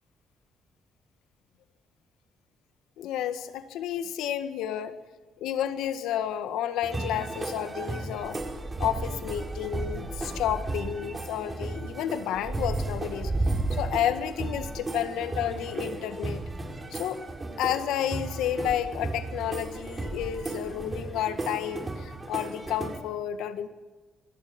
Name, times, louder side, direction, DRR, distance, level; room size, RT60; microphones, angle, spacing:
voice 1, 3.0-5.0 5.4-8.4 8.8-13.3 13.7-16.4 16.9-17.2 17.6-23.7, left 10 dB, 90° left, 9 dB, 1.8 m, -31 dB
sound 1, 6.8-23.0, right 2 dB, 25° right, 5.0 m, -34 dB
27.0 x 21.0 x 5.4 m, 1.3 s
cardioid pair, 90°, 0 cm